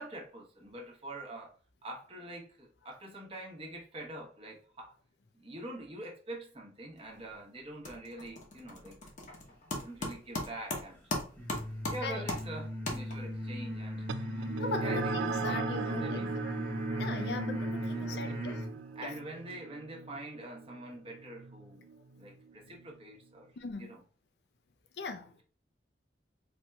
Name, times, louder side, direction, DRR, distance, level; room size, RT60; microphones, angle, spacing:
voice 1, 0.0-4.9 5.3-9.1 9.7-11.0 11.9-14.1 14.8-16.6 17.9-18.6 19.0-21.9 22.2-24.0, right 1 dB, 30° right, 0.9 m, -45 dB
sound 1, 7.0-7.4 7.6-13.5, left 2 dB, 40° left, 0.8 m, -39 dB
sound 2, 11.4-18.8, equal, 10° left, 0.9 m, -37 dB
sound 3, 14.1-22.9, right 4 dB, 85° right, 0.3 m, -39 dB
voice 2, 14.6-16.2 17.0-18.6 19.0-19.1 23.6-23.9 25.0-25.3, left 3 dB, 65° left, 0.5 m, -39 dB
4.2 x 2.8 x 2.2 m
head